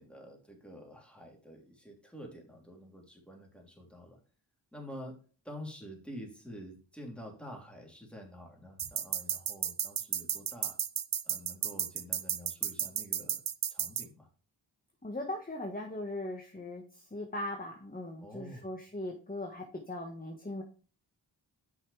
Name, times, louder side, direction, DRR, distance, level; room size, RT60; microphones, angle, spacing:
voice 1, 0.0-4.2 4.7-5.2 5.4-10.8 11.2-13.4 13.7-14.3 18.2-18.7, equal, ahead, 0 dB, 3.1 m, -48 dB
sound 1, 8.8-14.0, right 9 dB, 55° right, 0.6 m, -33 dB
voice 2, 15.0-20.6, left 1 dB, 20° left, 2 dB, 1.4 m, -39 dB
8.0 x 5.8 x 3.3 m, 0.38 s
cardioid pair, 45°, 46 cm